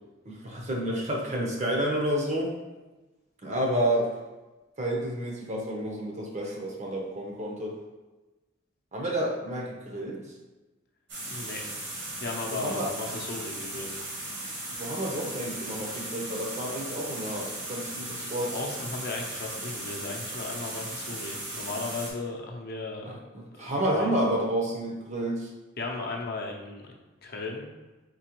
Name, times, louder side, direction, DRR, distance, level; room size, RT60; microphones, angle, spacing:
voice 1, 0.3-2.5 3.4-4.1 4.8-7.8 8.9-10.2 12.5-12.9 14.7-18.6 23.0-23.2 23.6-25.5, right 1 dB, 35° right, -1 dB, 0.7 m, -30 dB
sound 1, 11.1-22.1, right 1 dB, 65° right, 1.5 m, -37 dB
voice 2, 11.3-11.6 12.2-13.9 18.5-23.1 23.5-24.1 25.8-26.9 27.2-27.7, left 3 dB, 50° left, 0 dB, 0.6 m, -36 dB
4.2 x 3.8 x 3.0 m, 1.1 s
head